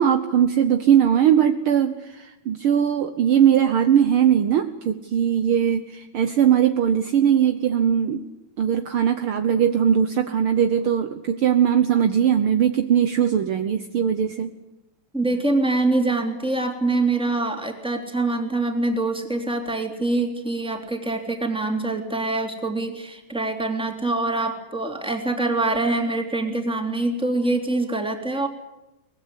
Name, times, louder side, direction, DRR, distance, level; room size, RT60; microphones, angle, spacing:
voice 1, 0.0-8.2 8.6-14.5, right 9 dB, 75° right, 8 dB, 1.2 m, -20 dB
voice 2, 15.1-28.5, right 2 dB, ahead, 3 dB, 2.7 m, -24 dB
24.0 x 20.0 x 9.8 m, 0.95 s
omnidirectional pair, 3.8 m